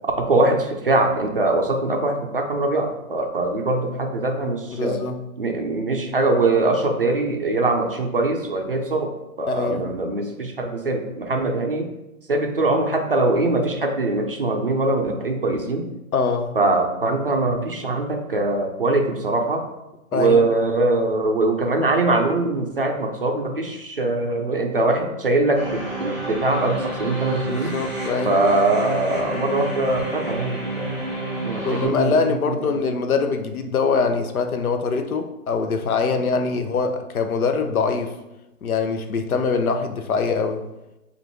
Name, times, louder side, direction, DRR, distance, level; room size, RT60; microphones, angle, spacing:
voice 1, 0.2-5.0 5.4-11.9 12.3-15.9 16.5-19.6 20.1-27.7 28.2-31.0 31.4-32.7, right 2 dB, 40° right, 3 dB, 0.4 m, -22 dB
voice 2, 4.7-5.2 9.5-9.9 16.1-16.6 20.1-20.4 27.5-28.4 31.6-38.1 38.6-40.6, left 4 dB, 75° left, 7 dB, 0.7 m, -23 dB
sound 1, 25.5-31.8, right 1 dB, 5° left, 1.3 m, -29 dB
5.3 x 2.5 x 3.1 m, 0.96 s
hypercardioid pair, 165°, 44 cm